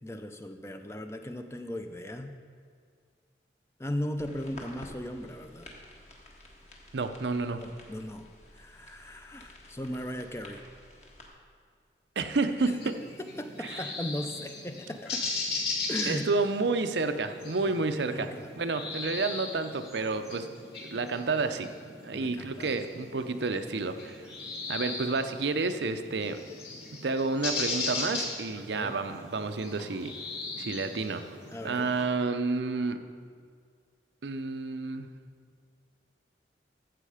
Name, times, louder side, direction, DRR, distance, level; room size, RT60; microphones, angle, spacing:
voice 1, 0.0-2.3 3.8-5.7 7.6-8.3 8.6-10.6 12.8-13.0 13.4-15.2 15.9-16.3 18.1-18.5 19.0-19.1 22.1-22.7 28.5-28.9 31.5-31.9, left 1 dB, 15° left, 6 dB, 0.5 m, -37 dB
sound 1, 4.2-11.3, left 1 dB, 40° left, 1.5 m, -51 dB
voice 2, 6.9-7.6 12.2-13.0 13.6-13.8 16.1-18.3 18.6-20.5 20.8-21.7 22.0-24.2 24.7-26.4 27.0-30.1 30.6-31.4 31.6-33.0 34.2-35.1, right 3 dB, 80° right, 8 dB, 0.6 m, -30 dB
sound 2, 12.6-32.0, left 3 dB, 65° left, 2.7 m, -38 dB
13.5 x 7.5 x 4.9 m, 2.1 s
head